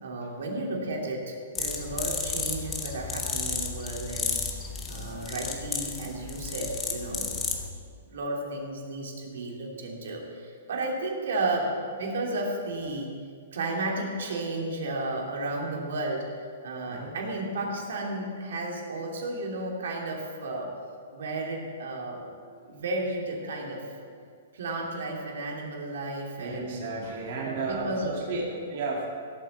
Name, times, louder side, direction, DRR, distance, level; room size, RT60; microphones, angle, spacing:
voice 1, 0.0-4.4 4.9-7.4 8.0-13.1 13.5-16.2 16.6-20.7 21.1-22.3 22.6-23.8 24.5-26.8 27.4-28.4, right 2 dB, 65° right, -1 dB, 2.9 m, -33 dB
sound 1, 1.5-7.7, left 5 dB, 10° left, 1.0 m, -33 dB
voice 2, 11.2-11.5 16.9-17.2 22.1-22.8 26.4-29.1, right 3 dB, 35° right, -4 dB, 2.4 m, -35 dB
16.0 x 8.5 x 7.1 m, 2.1 s
hypercardioid pair, 180°, 0 cm